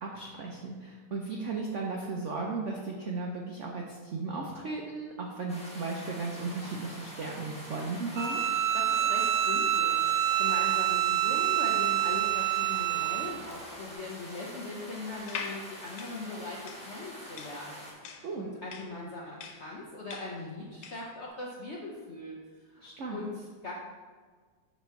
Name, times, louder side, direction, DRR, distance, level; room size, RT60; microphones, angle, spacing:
voice 1, 0.0-8.4 18.2-18.5 22.8-23.2, right 3 dB, 90° right, -1 dB, 0.6 m, -35 dB
sound 1, 5.5-17.9, equal, 5° left, 1.1 m, -45 dB
Bowed string instrument, 8.2-13.4, right 11 dB, 70° right, 1.0 m, -27 dB
voice 2, 8.7-22.3 22.6-23.7, left 2 dB, 65° left, -4 dB, 0.7 m, -40 dB
sound 2, 15.2-21.1, left 6 dB, 90° left, 1.5 m, -43 dB
7.2 x 3.0 x 5.6 m, 1.5 s
omnidirectional pair, 2.1 m